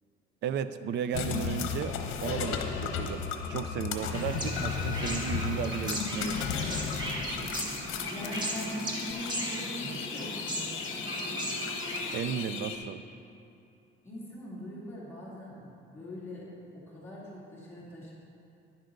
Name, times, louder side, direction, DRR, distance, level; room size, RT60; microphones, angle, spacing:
voice 1, 0.4-6.7 12.1-13.0, right 8 dB, 60° right, 12 dB, 0.5 m, -35 dB
sound 1, 1.1-12.8, left 6 dB, 70° left, 0.9 m, -35 dB
sound 2, 4.1-12.2, equal, 20° right, 1.5 m, -37 dB
voice 2, 8.1-10.7 14.0-16.5 16.7-18.1, equal, 10° left, -8 dB, 2.7 m, -41 dB
Acoustic guitar, 8.2-13.4, left 6 dB, 30° left, 0.8 m, -52 dB
10.5 x 10.5 x 3.9 m, 2.6 s
cardioid pair, 150°, 21 cm